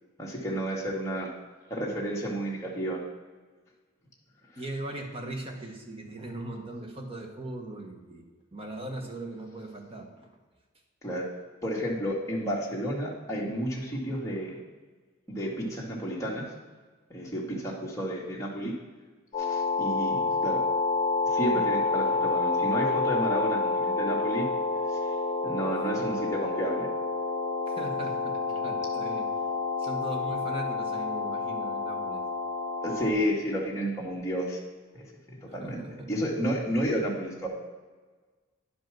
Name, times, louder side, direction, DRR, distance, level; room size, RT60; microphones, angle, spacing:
voice 1, 0.2-1.3 1.7-3.0 11.0-11.2 11.6-14.6 15.3-16.5 17.1-18.7 19.4-20.6 21.3-24.5 25.4-26.9 32.8-34.6 34.9-37.5, equal, 15° left, -5 dB, 1.9 m, -31 dB
voice 2, 4.6-8.2 8.5-10.4 26.0-26.1 27.7-29.3 29.8-32.2 35.6-36.1, right 1 dB, 25° right, 2 dB, 1.3 m, -39 dB
sound 1, 19.3-33.1, left 3 dB, 30° left, 1.6 m, -29 dB
10.0 x 5.2 x 6.1 m, 1.4 s
head